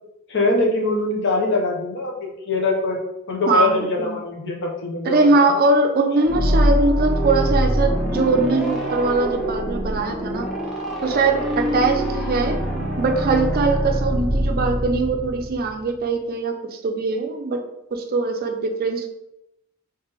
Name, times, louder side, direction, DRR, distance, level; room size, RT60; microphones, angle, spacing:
voice 1, 0.3-3.0 3.3-5.5, left 2 dB, 55° left, 0 dB, 0.8 m, -23 dB
voice 2, 3.5-4.2 5.0-10.5 11.0-12.6 13.0-17.6 17.9-19.1, right 3 dB, 45° right, 4 dB, 0.4 m, -21 dB
sound 1, 6.2-15.9, equal, ahead, 0.6 m, -24 dB
3.2 x 3.1 x 3.4 m, 0.86 s
head